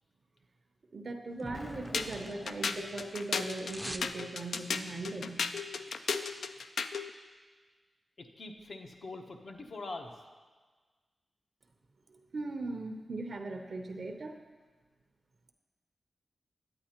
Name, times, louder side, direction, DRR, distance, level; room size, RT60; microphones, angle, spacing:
voice 1, 0.9-5.5 12.1-14.4, right 2 dB, 65° right, 5 dB, 0.6 m, -39 dB
Explosion, 1.4-3.5, left 1 dB, 30° left, 0.8 m, -47 dB
sound 1, 1.4-2.6 2.9-4.2 4.5-4.6, equal, ahead, 0.4 m, -45 dB
sound 2, 1.9-7.1, left 5 dB, 90° left, 0.3 m, -35 dB
voice 2, 8.2-10.2, left 2 dB, 65° left, 4 dB, 0.8 m, -43 dB
9.7 x 8.4 x 2.9 m, 1.4 s
cardioid pair, 60°, 0 cm